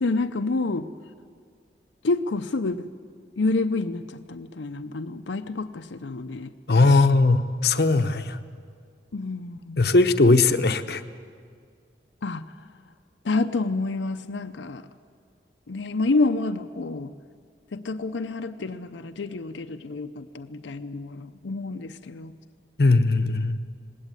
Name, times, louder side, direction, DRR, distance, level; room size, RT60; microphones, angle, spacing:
voice 1, 0.0-0.9 2.0-2.9 3.4-6.5 6.9-7.0 9.1-9.9 12.2-12.4 13.2-14.8 15.7-17.1 17.7-22.3, left 3 dB, 85° left, 7 dB, 0.6 m, -28 dB
voice 2, 6.7-8.4 9.8-11.0 22.8-23.6, left 3 dB, 60° left, 9 dB, 0.8 m, -19 dB
19.5 x 16.5 x 9.0 m, 2.1 s
head